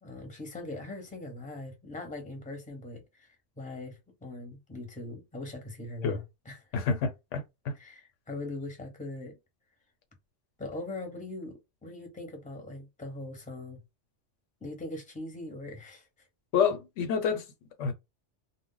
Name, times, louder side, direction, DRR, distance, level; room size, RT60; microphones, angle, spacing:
voice 1, 0.0-6.8 7.7-9.4 10.6-13.8 14.6-16.1, left 2 dB, 10° left, 0.7 m, -41 dB
voice 2, 6.7-7.4 7.6-7.7 16.5-17.4 17.8-17.9, left 6 dB, 85° left, 1.0 m, -28 dB
2.1 x 2.1 x 3.7 m
omnidirectional pair, 1.2 m